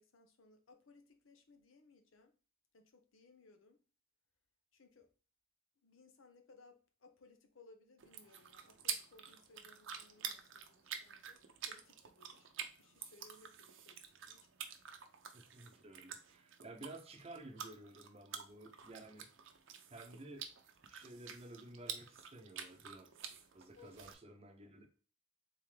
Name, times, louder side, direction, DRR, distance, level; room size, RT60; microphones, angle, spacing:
voice 1, 0.0-2.3 2.7-3.8 4.7-5.1 5.8-12.5 12.8-14.0 14.3-14.8 23.7-23.9, left 3 dB, 85° left, 0.8 m, -64 dB
sound 1, 8.0-24.1, right 8 dB, 70° right, 0.6 m, -49 dB
voice 2, 15.3-19.3 19.9-20.5 20.9-23.1 23.5-25.0, right 2 dB, 30° right, 0.6 m, -53 dB
3.7 x 3.6 x 3.2 m
head